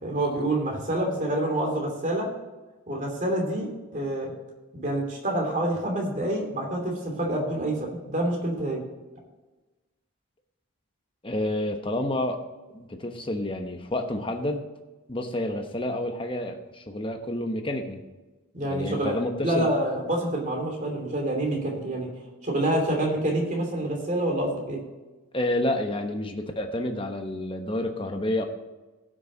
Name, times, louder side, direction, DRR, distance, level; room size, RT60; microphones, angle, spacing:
voice 1, 0.0-2.3 2.9-3.7 3.9-4.3 4.7-8.8 18.5-19.1 19.4-22.1 22.4-24.8, right 1 dB, 35° right, 1 dB, 2.8 m, -27 dB
voice 2, 11.2-12.4 12.7-14.6 15.1-18.0 18.6-19.7 25.3-28.5, left 1 dB, 25° left, 5 dB, 1.0 m, -29 dB
17.5 x 6.4 x 4.0 m, 1.2 s
head